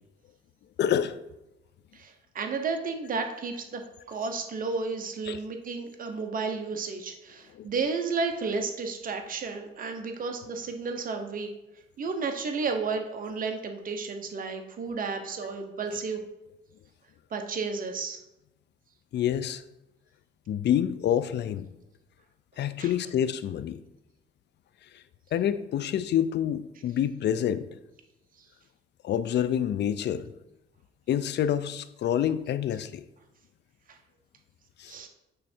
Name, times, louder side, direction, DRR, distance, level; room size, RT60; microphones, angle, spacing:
voice 1, 0.8-1.2 5.3-5.4 7.5-7.7 19.1-19.6 20.5-21.7 22.6-23.8 24.9-25.0 25.3-27.7 29.0-30.3 31.1-33.0 34.8-35.0, left 10 dB, 60° left, 14 dB, 0.5 m, -27 dB
voice 2, 1.9-3.8 4.1-11.5 12.0-16.2 17.3-18.2 22.8-22.9 33.9-34.0 34.9-35.1, right 4 dB, 45° right, 4 dB, 0.9 m, -32 dB
8.6 x 3.2 x 4.4 m, 0.94 s
cardioid pair, 90°, 20 cm